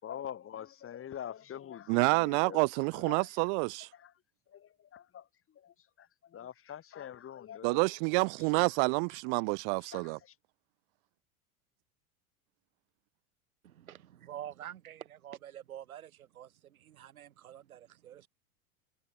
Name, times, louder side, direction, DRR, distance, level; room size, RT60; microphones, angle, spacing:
voice 1, 0.0-2.7 2.9-3.3 3.9-4.1 4.5-5.3 5.5-7.9 9.8-10.3, left 10 dB, 30° left, 3.3 m, -45 dB
voice 2, 1.9-3.9 7.6-10.2, right 38 dB, 50° right, 1.5 m, -28 dB
voice 3, 13.6-18.3, right 11 dB, 70° right, 6.7 m, -47 dB
figure-of-eight pair, 85°, 44 cm